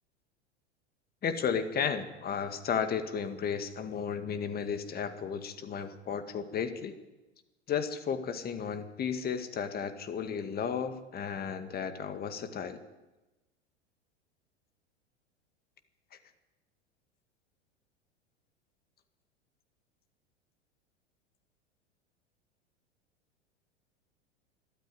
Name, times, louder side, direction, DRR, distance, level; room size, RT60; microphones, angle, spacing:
voice 1, 1.2-6.9 7.7-12.8, left 7 dB, 25° left, 9 dB, 2.0 m, -33 dB
23.5 x 12.5 x 9.4 m, 1.1 s
figure-of-eight pair, 85°, 34 cm